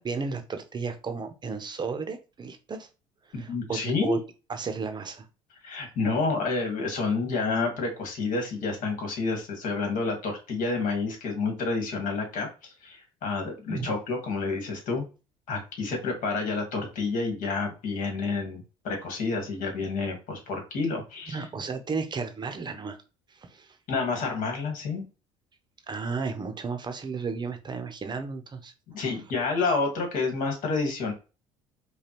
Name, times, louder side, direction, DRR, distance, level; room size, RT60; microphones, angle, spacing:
voice 1, 0.0-2.9 3.3-4.2 4.5-5.3 13.7-13.9 21.3-23.0 23.3-23.8 25.9-28.7, right 5 dB, 30° right, 7 dB, 0.7 m, -34 dB
voice 2, 3.3-4.2 5.6-15.1 15.5-21.5 23.9-25.1 28.9-31.1, left 3 dB, 65° left, 2 dB, 1.7 m, -29 dB
5.0 x 2.3 x 2.9 m, 0.32 s
supercardioid pair, 85°, 15 cm